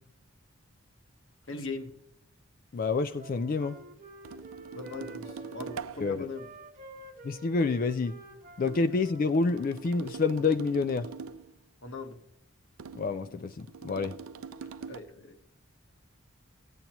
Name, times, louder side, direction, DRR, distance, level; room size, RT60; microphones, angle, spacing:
voice 1, 1.5-1.9 4.7-6.5 11.8-12.2 14.9-15.4, left 3 dB, 60° left, 5 dB, 1.2 m, -39 dB
voice 2, 2.7-3.8 6.0-6.2 7.2-8.1 8.6-11.1 12.9-14.1, left 4 dB, 40° left, 10 dB, 0.3 m, -28 dB
Wind instrument woodwind instrument, 2.9-5.9 6.3-9.7, right 2 dB, 35° right, 1.0 m, -50 dB
sound 1, 4.2-6.3 8.7-11.6 12.8-15.0, right 5 dB, 75° right, 0.4 m, -43 dB
16.0 x 9.3 x 3.0 m, 0.74 s
head